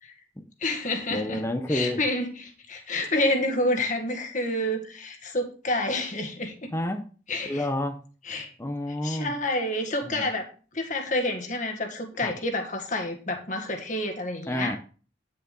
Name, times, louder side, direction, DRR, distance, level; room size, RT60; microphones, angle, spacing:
voice 1, 0.6-1.4 1.7-6.7 7.3-7.7 8.3-8.5 9.0-14.8, left 1 dB, 40° left, 4 dB, 1.8 m, -29 dB
voice 2, 1.1-2.0 6.7-7.0 7.5-8.0 8.6-9.3 10.1-10.3 12.2-12.3 14.5-14.8, left 1 dB, 15° left, 6 dB, 0.8 m, -29 dB
10.0 x 6.9 x 3.9 m, 0.37 s
head